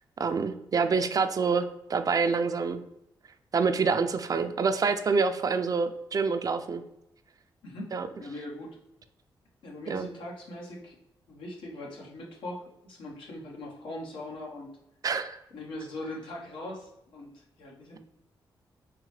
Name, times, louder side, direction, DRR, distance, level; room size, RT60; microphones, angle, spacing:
voice 1, 0.2-2.8 3.5-6.8 7.9-8.1 9.9-10.1 15.0-15.4, right 5 dB, 45° right, 8 dB, 0.4 m, -27 dB
voice 2, 7.6-8.8 9.6-11.0 11.3-14.7 15.5-18.0, left 1 dB, 85° left, -2 dB, 1.1 m, -41 dB
3.8 x 3.1 x 3.2 m, 0.84 s
cardioid pair, 65°, 8 cm